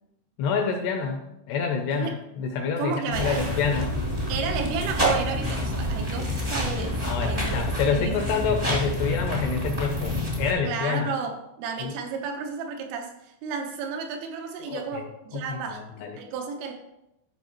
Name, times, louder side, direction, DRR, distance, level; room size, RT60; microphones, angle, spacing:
voice 1, 0.4-4.0 7.0-11.1 11.8-11.9 14.7-16.2, left 6 dB, 80° left, 4 dB, 2.4 m, -28 dB
voice 2, 2.8-3.4 4.3-7.6 7.9-8.2 10.7-15.8 16.2-16.7, right 5 dB, 85° right, 4 dB, 3.4 m, -32 dB
sound 1, 3.1-10.5, equal, 45° right, 0.4 m, -28 dB
14.0 x 5.6 x 3.0 m, 0.87 s
omnidirectional pair, 5.7 m